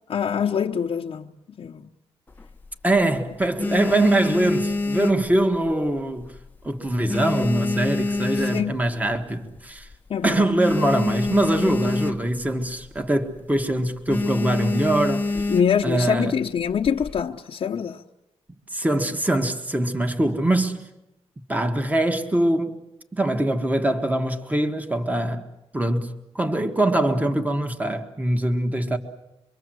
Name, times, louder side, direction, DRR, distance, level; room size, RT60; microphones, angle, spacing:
voice 1, 0.1-1.3 1.6-1.9 8.4-8.8 10.1-10.5 15.4-18.0, left 7 dB, 60° left, 1.0 m, -25 dB
sound 1, 2.3-3.0 3.4-5.9 6.2-6.6 6.8-9.1 9.6-9.7 9.8-10.0 10.3-12.5 12.8-13.0 13.4-13.6 14.1-15.9 16.6-17.2, left 3 dB, 15° left, 0.9 m, -26 dB
voice 2, 2.8-6.3 6.6-9.9 10.2-15.4 15.8-16.4 18.7-20.8 21.5-22.8 23.1-25.5 25.7-29.0, right 1 dB, 15° right, 1.7 m, -23 dB
26.0 x 23.5 x 7.8 m
wide cardioid pair, 125°, 11 cm